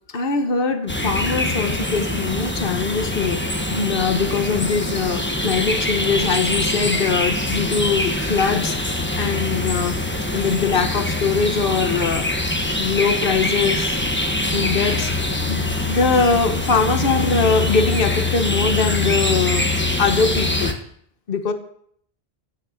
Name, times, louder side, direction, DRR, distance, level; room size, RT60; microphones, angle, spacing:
voice 1, 0.1-9.9 10.3-12.3 12.8-14.0 14.5-15.1 15.5-20.7 21.3-21.5, left 5 dB, 60° left, 8 dB, 1.3 m, -22 dB
sound 1, 0.9-20.7, left 2 dB, 10° left, 1.2 m, -23 dB
15.5 x 6.5 x 6.4 m, 0.65 s
omnidirectional pair, 1.1 m